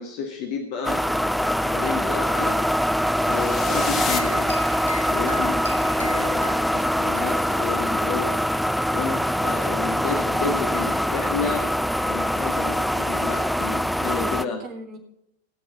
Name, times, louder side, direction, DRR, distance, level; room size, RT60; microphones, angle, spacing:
voice 1, 0.0-2.6 3.3-4.5 5.0-5.6 6.0-8.3 8.9-11.7 12.1-14.6, left 5 dB, 45° left, 4 dB, 1.9 m, -31 dB
sound 1, 0.8-14.4, equal, ahead, 0.4 m, -23 dB
sound 2, 3.1-5.3, left 5 dB, 25° left, 1.7 m, -32 dB
sound 3, 3.7-8.2, left 2 dB, 85° left, 0.7 m, -40 dB
voice 2, 5.4-5.9 6.3-6.7 14.3-15.0, right 2 dB, 35° right, 4 dB, 3.8 m, -40 dB
18.5 x 7.2 x 5.9 m, 0.76 s
figure-of-eight pair, 90°, 0 cm